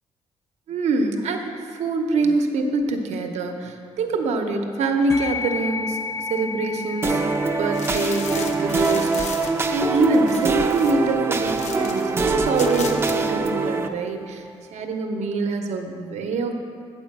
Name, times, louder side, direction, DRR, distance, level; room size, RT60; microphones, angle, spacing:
voice 1, 0.7-7.2 7.6-9.4 9.7-14.4 14.7-16.5, right 3 dB, 80° right, 4 dB, 0.8 m, -25 dB
sound 1, 5.1-14.8, left 4 dB, 25° left, 0.6 m, -36 dB
sound 2, 7.0-13.9, right 3 dB, 20° right, 0.4 m, -23 dB
sound 3, 7.7-12.0 12.3-13.2 13.4-13.5, left 5 dB, 80° left, 0.8 m, -36 dB
8.6 x 4.9 x 7.2 m, 2.4 s
cardioid pair, 150°, 11 cm